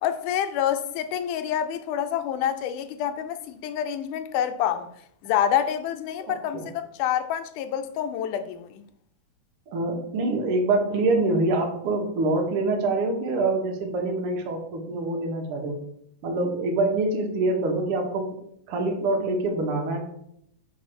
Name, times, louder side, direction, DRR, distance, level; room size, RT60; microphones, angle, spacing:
voice 1, 0.0-4.9 5.2-8.8, left 9 dB, 85° left, 2.1 m, -27 dB
voice 2, 9.7-15.8 16.2-18.3 18.7-20.0, right 2 dB, 55° right, 1.9 m, -25 dB
6.3 x 3.7 x 6.1 m
omnidirectional pair, 3.5 m